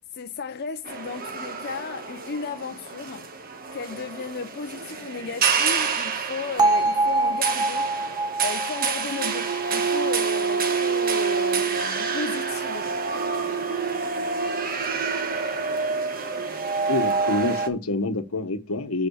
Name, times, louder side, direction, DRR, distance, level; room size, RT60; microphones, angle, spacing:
voice 1, 0.1-3.3 3.7-8.0 8.4-12.9, left 5 dB, 50° left, 0.5 m, -35 dB
sound 1, 0.9-17.7, right 5 dB, 40° right, 1.2 m, -27 dB
Bell, 6.6-10.7, right 2 dB, 20° right, 0.8 m, -25 dB
sound 2, 12.7-14.5 15.1-16.9, right 4 dB, 80° right, 4.3 m, -52 dB
voice 2, 16.9-19.1, left 2 dB, 75° left, 1.1 m, -27 dB
7.6 x 5.4 x 6.3 m
head